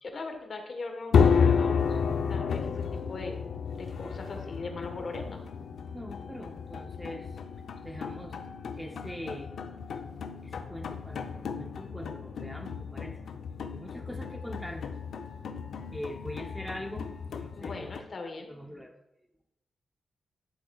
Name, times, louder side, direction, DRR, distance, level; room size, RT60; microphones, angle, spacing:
voice 1, 0.0-2.0 2.3-3.4 3.8-5.4 17.6-18.8, left 3 dB, 45° left, 4 dB, 1.3 m, -40 dB
sound 1, 1.1-18.0, left 6 dB, 75° left, 0.6 m, -31 dB
voice 2, 5.9-7.4 7.8-8.4 8.8-9.5 10.4-13.2 13.7-15.0 15.9-17.9 18.4-18.9, equal, ahead, 2 dB, 0.7 m, -42 dB
10.5 x 8.0 x 2.3 m, 0.86 s
wide cardioid pair, 145°, 0 cm